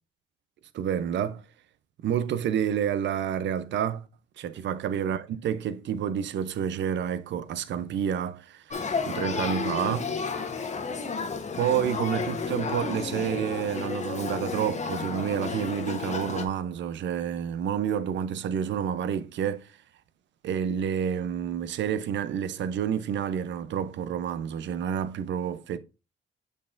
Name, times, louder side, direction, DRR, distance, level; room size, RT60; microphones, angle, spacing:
voice 1, 0.7-1.4 2.0-4.1 4.4-8.6 9.1-10.1 11.5-19.7 20.4-25.8, right 8 dB, 65° right, 0.6 m, -29 dB
Male speech man speaking / Child speech kid speaking / Conversation, 8.7-16.5, left 5 dB, 35° left, 1.1 m, -32 dB
6.6 x 5.7 x 2.5 m
cardioid pair, 90°, 20 cm